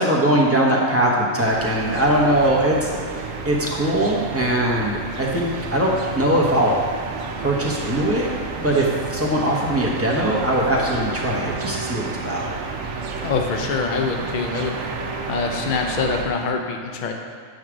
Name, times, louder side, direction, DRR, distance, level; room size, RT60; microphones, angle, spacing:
voice 1, 0.0-6.7 7.4-8.3 8.6-12.5, right 1 dB, 10° right, -4 dB, 0.9 m, -21 dB
city square calm distant traffic birds Marseille France MS, 1.4-16.3, right 4 dB, 80° right, 1.1 m, -31 dB
voice 2, 13.2-14.8 15.3-17.1, left 4 dB, 50° left, 3 dB, 0.6 m, -24 dB
8.6 x 3.2 x 6.1 m, 2.1 s
omnidirectional pair, 1.3 m